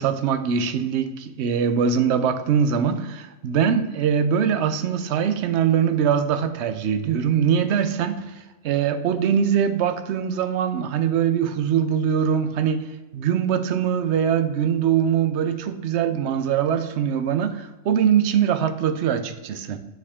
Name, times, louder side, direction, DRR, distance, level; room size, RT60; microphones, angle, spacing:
voice 1, 0.0-8.3 8.6-12.9 13.1-19.8, right 8 dB, 65° right, 0.9 m, -22 dB
9.0 x 4.9 x 3.6 m
omnidirectional pair, 1.3 m